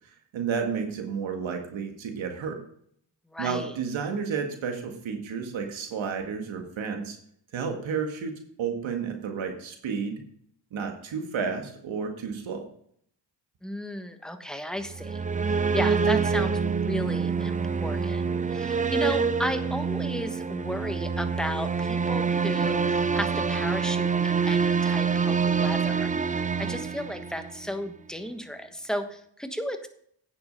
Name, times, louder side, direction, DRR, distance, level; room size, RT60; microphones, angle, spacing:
voice 1, 0.3-2.6 3.4-7.2 7.5-8.3 8.6-10.2 10.7-12.7, right 6 dB, 75° right, 4 dB, 1.9 m, -31 dB
voice 2, 3.3-3.7 13.6-15.2 15.5-18.2 18.5-29.9, equal, ahead, 7 dB, 1.2 m, -34 dB
sound 1, 14.9-27.7, right 5 dB, 15° right, 0.5 m, -26 dB
9.3 x 6.8 x 5.3 m, 0.66 s
cardioid pair, 80°, 47 cm